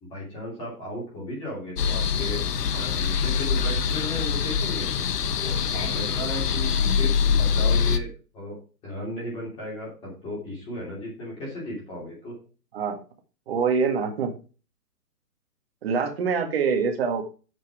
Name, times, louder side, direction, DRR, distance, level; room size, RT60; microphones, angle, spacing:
voice 1, 0.0-2.4 2.7-4.9 5.4-8.6 8.8-12.3, left 1 dB, 10° left, -5 dB, 2.9 m, -35 dB
sound 1, 1.8-8.0, left 6 dB, 75° left, 1.2 m, -24 dB
voice 2, 13.5-14.4 15.8-17.2, right 5 dB, 40° right, 5 dB, 1.8 m, -25 dB
7.8 x 6.6 x 4.8 m, 0.35 s
hypercardioid pair, 175°, 47 cm